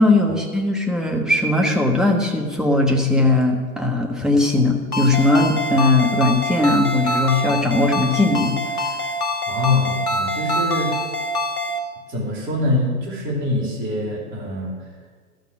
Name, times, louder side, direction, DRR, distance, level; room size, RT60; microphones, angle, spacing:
voice 1, 0.0-8.5, left 2 dB, ahead, 0 dB, 1.2 m, -19 dB
Ringtone, 4.9-11.8, left 1 dB, 80° left, 1.4 m, -25 dB
voice 2, 9.5-10.9 12.1-14.9, left 2 dB, 25° right, -2 dB, 2.8 m, -24 dB
13.0 x 6.6 x 6.0 m, 1.5 s
figure-of-eight pair, 100°, 43 cm